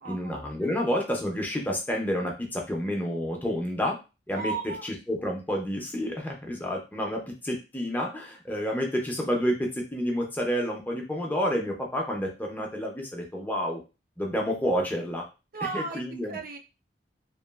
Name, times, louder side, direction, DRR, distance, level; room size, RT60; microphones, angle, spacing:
voice 1, 0.0-4.0 4.3-4.5 4.8-13.8 14.2-15.3 15.7-16.4, equal, 10° left, 0 dB, 0.5 m, -29 dB
voice 2, 4.3-4.8 15.5-16.0 16.3-16.6, right 4 dB, 55° right, 3 dB, 0.4 m, -34 dB
2.9 x 2.3 x 2.3 m, 0.29 s
head